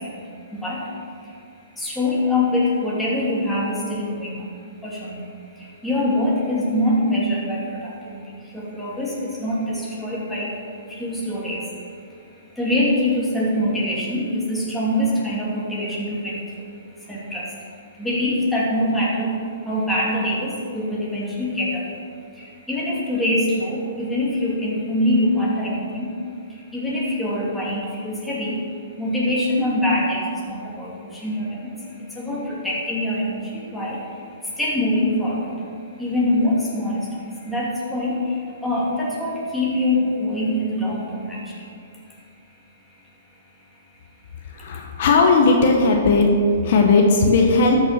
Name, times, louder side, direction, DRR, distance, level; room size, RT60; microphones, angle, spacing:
voice 1, 1.8-4.4 4.8-5.2 5.8-7.6 8.1-8.2 8.5-9.1 9.4-10.5 11.0-11.6 12.6-16.4 17.1-17.5 18.0-19.3 19.7-21.8 22.7-26.1 26.7-28.5 29.0-30.9 31.2-31.7 32.2-33.4 33.7-34.0 34.6-35.4 36.0-37.0 37.5-38.1 38.6-41.4, left 1 dB, 5° left, -6 dB, 2.8 m, -23 dB
voice 2, 44.6-46.3 46.6-47.8, left 3 dB, 55° left, 2 dB, 1.4 m, -16 dB
13.0 x 6.5 x 5.9 m, 2.3 s
hypercardioid pair, 145°, 0 cm